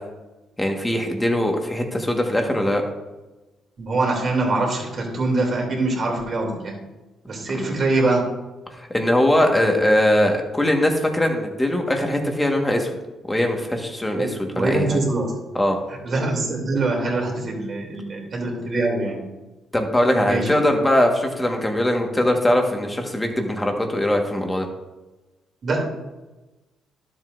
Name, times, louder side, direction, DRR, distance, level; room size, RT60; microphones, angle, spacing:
voice 1, 0.6-2.8 7.5-7.7 8.8-12.9 13.2-15.0 15.5-15.8 19.7-24.7, left 1 dB, 10° left, 2 dB, 1.5 m, -21 dB
voice 2, 3.8-6.8 7.3-8.2 14.1-15.3 16.0-19.2 20.2-20.5 25.6-25.8, right 2 dB, 50° right, -1 dB, 3.0 m, -23 dB
12.0 x 7.8 x 2.6 m, 1.1 s
cardioid pair, 90°, 0 cm